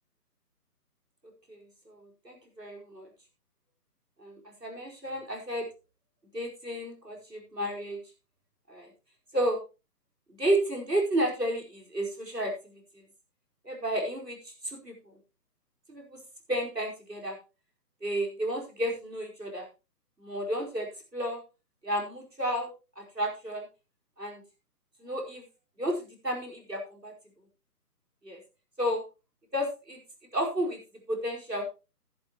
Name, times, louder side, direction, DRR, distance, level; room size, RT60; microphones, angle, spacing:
voice 1, 1.5-3.1 4.2-5.6 6.3-8.0 8.7-8.9 9.3-9.6 10.3-12.8 13.6-15.1 15.9-16.2 16.5-17.4 18.0-19.7 20.2-21.4 21.8-23.7 24.2-24.4 25.0-25.4 25.8-27.1 28.2-28.4 28.8-29.0 29.5-30.0 30.3-30.8 31.1-31.6, right 1 dB, 85° right, 0 dB, 4.9 m, -32 dB
13.5 x 11.0 x 3.0 m, 0.30 s
figure-of-eight pair, 145°, 48 cm